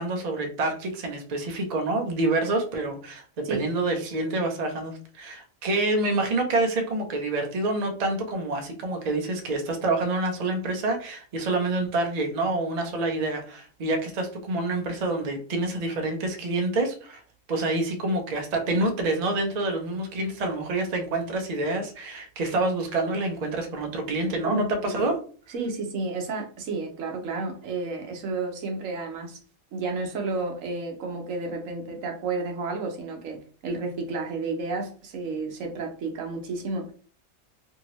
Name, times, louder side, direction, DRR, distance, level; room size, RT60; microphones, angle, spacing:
voice 1, 0.0-17.2 17.5-25.2, right 2 dB, 50° right, 0.5 m, -27 dB
voice 2, 24.4-25.0 25.5-29.4 29.7-36.9, right 3 dB, 75° right, 1.1 m, -31 dB
2.7 x 2.7 x 2.9 m
omnidirectional pair, 1.4 m